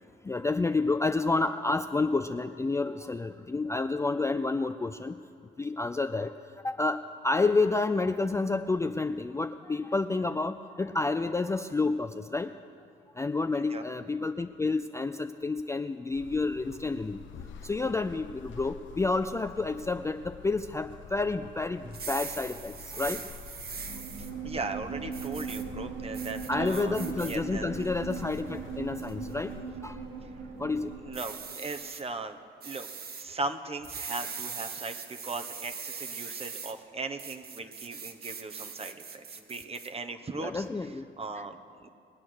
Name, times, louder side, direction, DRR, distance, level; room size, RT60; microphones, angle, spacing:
voice 1, 0.2-5.2 5.6-6.3 6.6-12.5 13.2-17.2 17.6-23.3 26.5-29.5 29.8-30.0 30.6-30.9 36.3-36.4 40.4-41.0 41.4-41.5, left 3 dB, 15° left, 9 dB, 0.4 m, -29 dB
sound 1, 16.1-29.6, left 7 dB, 70° left, 0.9 m, -48 dB
sound 2, 21.9-24.3 25.1-25.6 26.1-27.4 27.8-28.4 29.0-29.3 31.1-32.0 32.6-33.2 33.8-36.7 37.2-39.9, right 5 dB, 50° right, 1.3 m, -41 dB
sound 3, 23.7-31.6, right 5 dB, 70° right, 1.6 m, -39 dB
voice 2, 24.2-27.7 31.0-32.4 32.6-32.9 33.2-40.6 41.2-41.9, right 3 dB, 30° right, 8 dB, 1.1 m, -38 dB
21.5 x 8.5 x 6.3 m, 2.4 s
cardioid pair, 90°, 20 cm